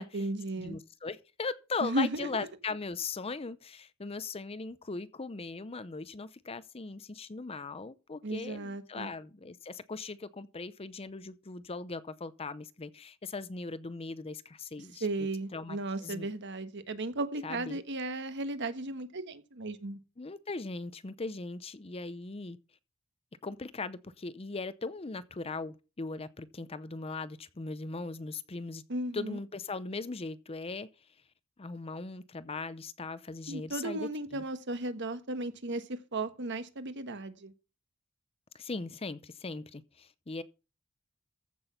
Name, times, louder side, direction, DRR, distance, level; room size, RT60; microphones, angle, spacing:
voice 1, 0.0-0.8 1.8-2.5 8.2-9.1 15.0-20.0 28.9-29.4 33.5-37.5, right 2 dB, 55° right, 1.3 m, -35 dB
voice 2, 0.6-15.1 15.5-16.3 17.4-17.8 20.2-22.6 23.4-28.8 29.1-30.9 31.6-34.4 38.5-40.4, left 3 dB, 25° left, 0.6 m, -39 dB
14.5 x 6.1 x 5.8 m
head